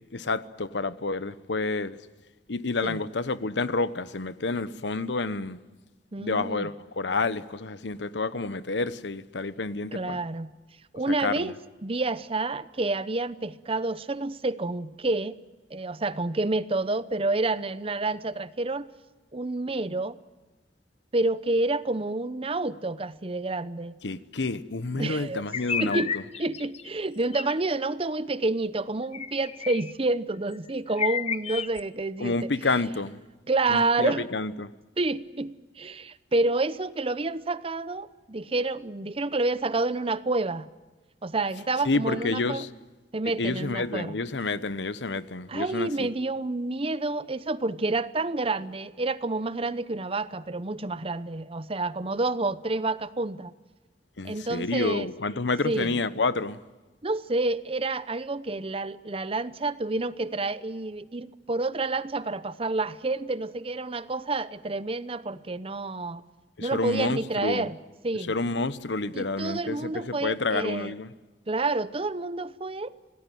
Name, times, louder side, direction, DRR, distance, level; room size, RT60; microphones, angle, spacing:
voice 1, 0.1-2.0 2.5-5.6 6.2-10.2 11.2-11.5 24.0-26.2 32.2-33.2 33.7-34.7 41.8-42.7 43.2-46.1 54.2-56.6 66.6-67.7 68.3-71.1, left 3 dB, 85° left, 1.0 m, -29 dB
voice 2, 6.1-6.7 9.9-10.5 10.9-11.5 11.8-15.4 15.7-18.9 19.3-20.2 21.1-23.9 24.9-25.4 25.8-26.1 26.4-32.5 33.5-34.3 35.0-40.7 41.2-42.7 43.1-44.1 45.5-53.5 54.2-55.1 55.6-55.9 57.0-66.2 66.6-67.8 68.0-68.3 69.1-70.9 71.5-72.9, right 2 dB, 30° right, 0.8 m, -29 dB
sound 1, 25.5-26.9 27.3-27.5 29.1-29.9 30.5-30.6 30.9-31.8, left 7 dB, 35° left, 0.8 m, -32 dB
26.5 x 18.5 x 9.3 m
head